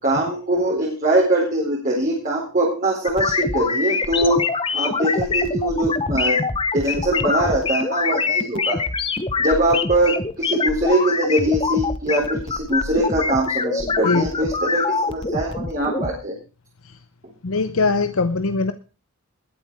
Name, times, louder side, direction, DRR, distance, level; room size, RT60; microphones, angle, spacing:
voice 1, 0.0-4.5 4.7-6.4 6.7-8.8 9.4-16.3, right 1 dB, 40° right, -3 dB, 4.4 m, -22 dB
sound 1, 3.1-16.1, left 4 dB, 25° left, 1.0 m, -24 dB
voice 2, 17.4-18.7, left 3 dB, 70° left, 11 dB, 0.7 m, -21 dB
20.5 x 7.9 x 4.8 m, 0.35 s
head